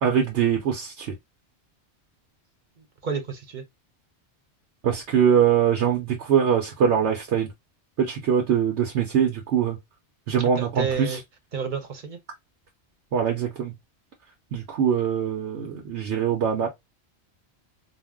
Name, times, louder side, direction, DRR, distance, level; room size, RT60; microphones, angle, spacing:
voice 1, 0.0-1.1 4.8-7.5 8.0-9.8 10.3-11.2 13.1-13.7 14.5-16.7, right 8 dB, 85° right, 1.0 m, -23 dB
voice 2, 2.8-3.6 10.4-11.2 11.5-12.2, right 6 dB, 50° right, 0.8 m, -31 dB
2.5 x 2.1 x 3.4 m
omnidirectional pair, 1.1 m